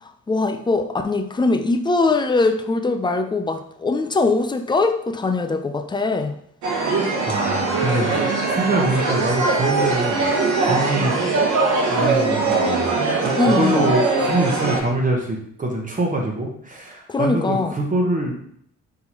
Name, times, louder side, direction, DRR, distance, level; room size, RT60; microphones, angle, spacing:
voice 1, 0.0-6.3 13.3-13.9 17.1-17.7, left 3 dB, 15° left, 5 dB, 0.4 m, -21 dB
sound 1, 6.6-14.8, right 3 dB, 70° right, 1.1 m, -21 dB
voice 2, 7.2-10.2 10.6-11.2 11.9-12.9 13.2-18.4, right 2 dB, 25° right, -1 dB, 1.0 m, -24 dB
4.2 x 3.7 x 3.0 m, 0.69 s
cardioid pair, 90°, 30 cm